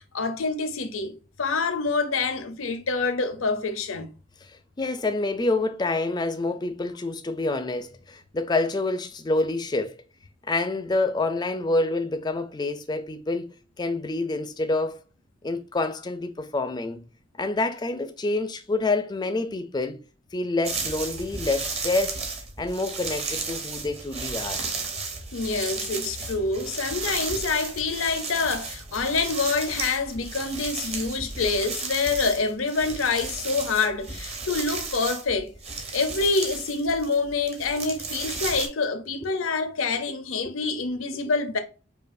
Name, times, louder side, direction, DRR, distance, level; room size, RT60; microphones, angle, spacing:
voice 1, 0.0-4.1 25.3-35.5 35.9-41.6, left 4 dB, 85° left, 0.7 m, -26 dB
voice 2, 4.8-10.0 10.5-15.0 15.4-17.0 17.4-20.0 20.3-22.2 22.6-24.6 40.4-40.5, left 2 dB, 20° left, 0.4 m, -27 dB
sound 1, 20.6-38.7, right 4 dB, 30° right, 0.7 m, -34 dB
5.3 x 2.3 x 2.6 m
head